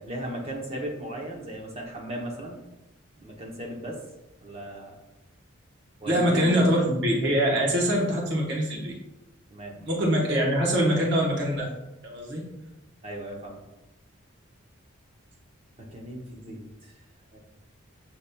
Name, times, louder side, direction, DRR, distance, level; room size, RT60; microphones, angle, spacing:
voice 1, 0.0-2.6 3.2-4.0 4.4-5.0 6.0-6.7 9.5-9.8 13.0-13.6 15.8-16.9 17.3-17.4, right 1 dB, 30° right, -1 dB, 0.7 m, -36 dB
voice 2, 6.1-8.9 9.9-11.7 12.0-12.5, equal, 55° right, -2 dB, 0.9 m, -24 dB
6.5 x 2.8 x 2.2 m, 0.94 s
head